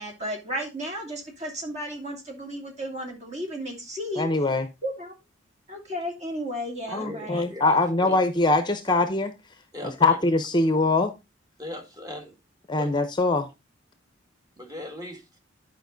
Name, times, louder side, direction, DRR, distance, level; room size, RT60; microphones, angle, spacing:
voice 1, 0.0-4.3 4.8-5.1 5.7-7.4, equal, 35° right, 2.7 m, -33 dB
voice 2, 4.2-4.7 6.9-9.3 10.0-11.1 12.7-13.5, left 2 dB, 25° left, 0.7 m, -22 dB
voice 3, 6.9-8.2 9.7-10.2 11.6-12.4 12.8-12.9 14.6-15.2, equal, 20° right, 1.9 m, -38 dB
11.0 x 5.1 x 3.9 m
head